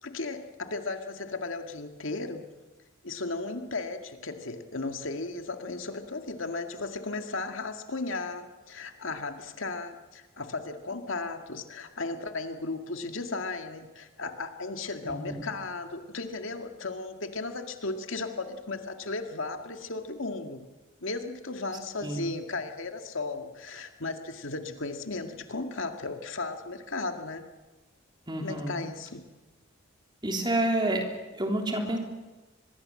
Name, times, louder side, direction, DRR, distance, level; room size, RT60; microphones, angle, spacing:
voice 1, 0.0-2.5 3.0-20.6 21.0-27.5 28.4-29.2, left 3 dB, 75° left, 6 dB, 2.0 m, -35 dB
voice 2, 15.0-15.4 22.0-22.3 28.3-28.8 30.2-31.0 31.3-32.0, right 1 dB, 20° right, 2 dB, 3.3 m, -29 dB
25.0 x 21.0 x 7.7 m, 1.2 s
head